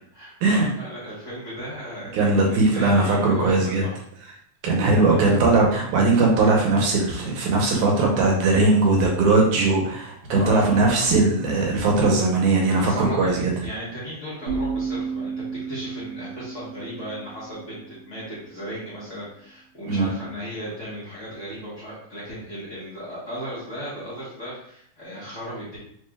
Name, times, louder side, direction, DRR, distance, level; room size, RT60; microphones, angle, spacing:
voice 1, 0.1-4.0 5.1-5.5 10.4-11.1 12.8-15.3 15.7-25.8, equal, 55° left, -10 dB, 0.8 m, -36 dB
voice 2, 2.1-3.8 4.6-13.5 19.9-20.1, right 3 dB, 85° right, -1 dB, 2.3 m, -19 dB
sound 1, 14.5-18.3, right 4 dB, 55° right, 1.7 m, -32 dB
4.9 x 3.2 x 2.3 m, 0.66 s
omnidirectional pair, 3.4 m